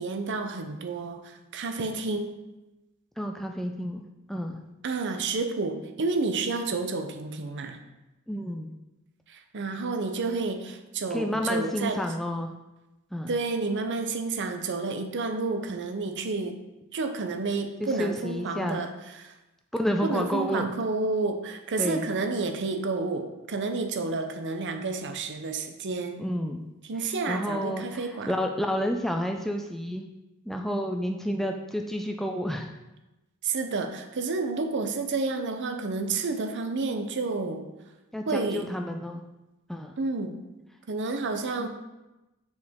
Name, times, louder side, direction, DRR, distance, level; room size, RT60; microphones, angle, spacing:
voice 1, 0.0-2.4 4.8-7.8 9.3-12.0 13.3-16.6 16.9-19.3 20.0-26.2 26.8-28.3 33.4-37.6 38.3-38.7 40.0-40.4 40.9-41.7, right 3 dB, 55° right, 6 dB, 0.6 m, -30 dB
voice 2, 3.2-4.6 8.3-8.7 11.1-12.5 13.1-13.3 17.8-18.9 19.7-20.7 21.8-22.1 26.2-26.6 27.3-30.0 30.5-32.7 38.1-39.2 39.7-39.9 41.6-41.7, equal, ahead, 3 dB, 0.3 m, -30 dB
6.5 x 4.7 x 3.6 m, 1.0 s
head